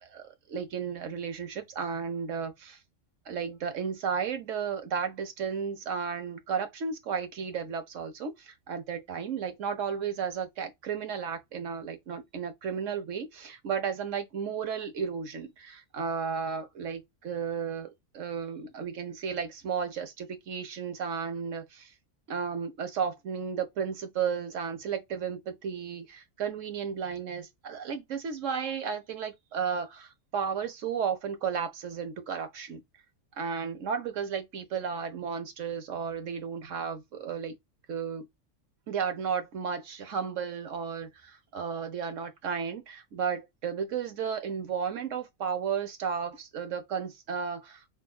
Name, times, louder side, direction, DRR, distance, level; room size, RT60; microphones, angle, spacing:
voice 1, 0.0-2.8 3.3-21.9 22.3-32.8 33.4-37.5 37.9-38.3 38.9-47.9, right 6 dB, 75° right, 1.4 m, -33 dB
6.3 x 2.6 x 2.3 m
omnidirectional pair, 1.3 m